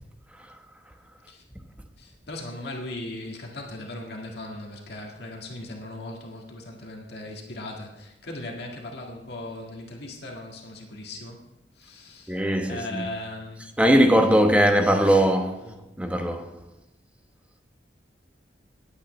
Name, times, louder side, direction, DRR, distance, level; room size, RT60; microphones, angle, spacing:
voice 1, 2.0-11.4 11.8-12.4 12.7-13.7, left 2 dB, 65° left, 1.8 m, -38 dB
voice 2, 12.3-13.1 13.8-16.5, equal, 5° right, 1.0 m, -20 dB
19.5 x 8.7 x 3.2 m
head